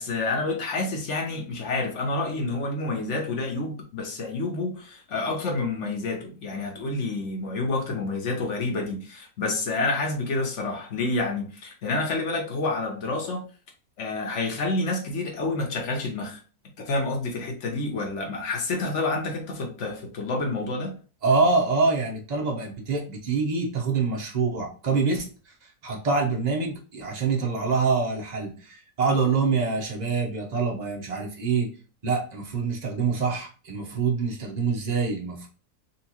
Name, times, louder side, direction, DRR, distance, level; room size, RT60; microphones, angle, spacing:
voice 1, 0.0-13.4 14.0-16.4 16.8-20.9, left 3 dB, 55° left, 1.0 m, -28 dB
voice 2, 21.2-31.7 32.0-35.5, right 4 dB, 40° right, 0.6 m, -25 dB
4.1 x 2.5 x 2.8 m
omnidirectional pair, 1.7 m